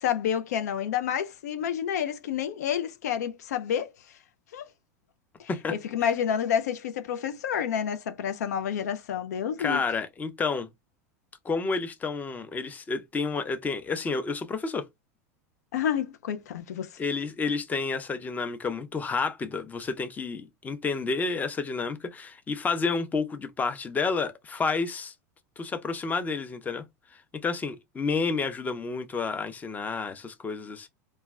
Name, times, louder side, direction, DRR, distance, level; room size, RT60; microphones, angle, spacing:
voice 1, 0.0-3.9 4.5-4.6 5.4-9.8 15.7-17.0, left 9 dB, 85° left, 0.4 m, -29 dB
voice 2, 9.6-10.7 11.4-14.9 17.0-25.1 25.6-26.8 27.1-30.9, left 4 dB, 20° left, 0.5 m, -30 dB
2.2 x 2.1 x 3.4 m
hypercardioid pair, 110°, 9 cm